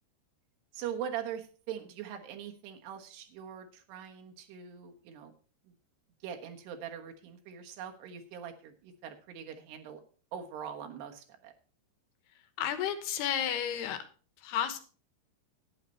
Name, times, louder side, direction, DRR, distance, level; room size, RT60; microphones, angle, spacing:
voice 1, 0.7-5.3 6.2-10.0 10.3-11.5, right 9 dB, 90° right, 4 dB, 3.5 m, -42 dB
voice 2, 12.6-14.1 14.4-14.8, left 9 dB, 80° left, 10 dB, 3.2 m, -32 dB
11.5 x 9.8 x 4.3 m, 0.40 s
omnidirectional pair, 4.6 m